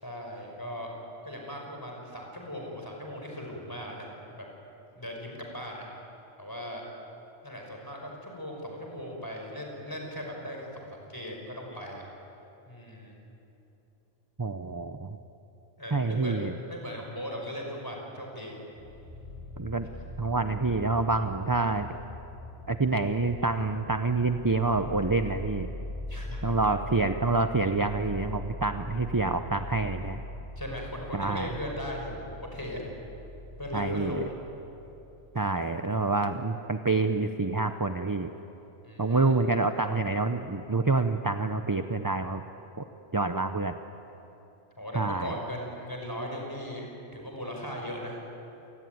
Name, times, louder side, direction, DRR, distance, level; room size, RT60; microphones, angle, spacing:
voice 1, 0.0-0.9 1.2-4.1 4.4-4.5 5.0-5.9 6.4-6.8 7.4-12.0 12.7-13.1 15.8-18.6 26.1-26.5 30.6-32.8 33.6-34.3 38.8-39.3 44.8-48.2, equal, 15° left, 0 dB, 5.6 m, -38 dB
voice 2, 14.4-15.2 15.9-16.5 19.6-19.9 20.2-21.9 22.7-25.7 26.4-30.2 31.1-31.5 33.7-34.2 35.3-38.3 39.0-42.4 42.8-42.9 43.1-43.8 44.9-45.3, right 3 dB, 25° right, 7 dB, 0.5 m, -27 dB
sound 1, 18.8-35.3, left 1 dB, ahead, 7.7 m, -42 dB
27.5 x 20.0 x 9.4 m, 3.0 s
omnidirectional pair, 1.3 m